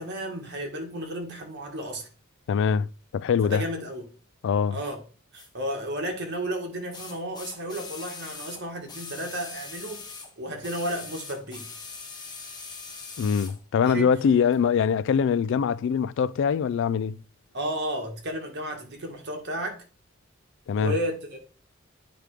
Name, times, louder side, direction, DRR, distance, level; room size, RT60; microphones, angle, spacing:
voice 1, 0.0-2.1 3.4-4.1 4.7-5.0 5.3-10.0 10.4-11.7 13.8-14.1 17.5-19.8 20.7-21.4, right 1 dB, 55° right, 1.8 m, -33 dB
voice 2, 2.5-2.9 3.1-3.6 4.4-4.8 13.2-17.2 20.7-20.9, left 7 dB, 60° left, 0.3 m, -23 dB
sound 1, 5.3-5.5 6.9-10.3 10.6-13.6 14.5-14.6, left 4 dB, 20° left, 1.3 m, -41 dB
9.0 x 3.4 x 4.9 m
head